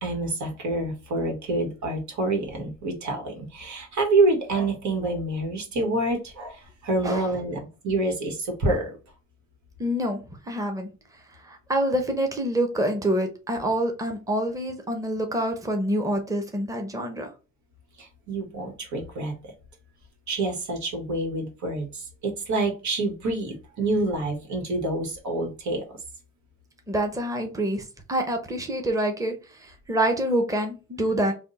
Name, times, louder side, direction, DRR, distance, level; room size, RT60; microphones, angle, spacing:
voice 1, 0.0-9.0 18.0-19.3 20.3-25.8, right 2 dB, 70° right, 1.6 m, -27 dB
voice 2, 9.8-10.2 10.5-10.9 11.4-17.3 26.9-27.8 28.1-31.3, right 1 dB, 10° right, 0.9 m, -26 dB
3.5 x 2.3 x 4.0 m
cardioid pair, 90°, 30 cm